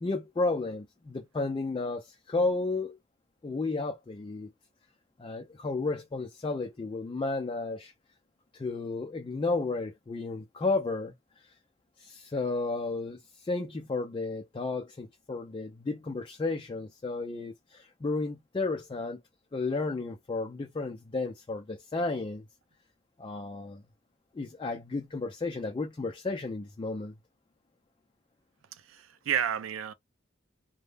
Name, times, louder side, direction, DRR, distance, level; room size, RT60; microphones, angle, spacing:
voice 1, 0.0-3.0 3.4-4.5 5.2-7.9 8.5-11.5 12.0-19.2 19.5-22.5 23.2-23.8 24.3-27.1, left 3 dB, 25° left, 0.3 m, -33 dB
voice 2, 28.7-29.9, right 9 dB, 85° right, 0.4 m, -31 dB
2.1 x 2.0 x 3.2 m
head